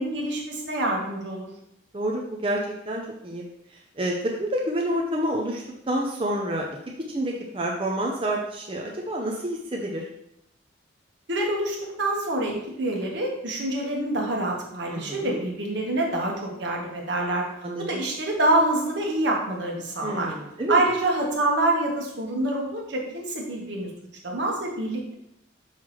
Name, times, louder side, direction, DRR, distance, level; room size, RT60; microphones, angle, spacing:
voice 1, 0.0-1.5 11.3-17.4 17.8-20.3 20.7-23.9 24.2-25.1, right 1 dB, 70° right, 0 dB, 1.4 m, -26 dB
voice 2, 1.9-2.6 2.9-3.4 4.0-6.7 7.1-10.0 14.9-15.4 17.6-18.0 20.0-20.8, right 1 dB, 30° right, -1 dB, 0.6 m, -28 dB
5.9 x 5.7 x 3.2 m, 0.78 s
head